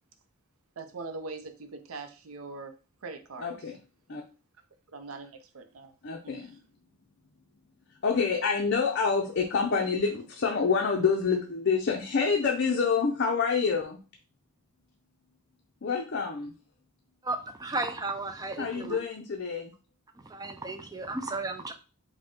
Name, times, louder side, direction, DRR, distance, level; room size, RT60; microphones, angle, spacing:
voice 1, 0.8-2.7 3.0-3.5 4.9-5.9 6.2-6.4, right 3 dB, 75° right, 7 dB, 0.6 m, -41 dB
voice 2, 3.4-3.8 4.1-4.2 6.0-6.6 8.0-14.0 15.8-16.5 18.6-19.7, left 5 dB, 55° left, 1 dB, 0.5 m, -27 dB
voice 3, 17.2-19.0 20.3-21.7, right 3 dB, 15° right, 7 dB, 0.3 m, -34 dB
5.0 x 2.1 x 3.7 m, 0.34 s
head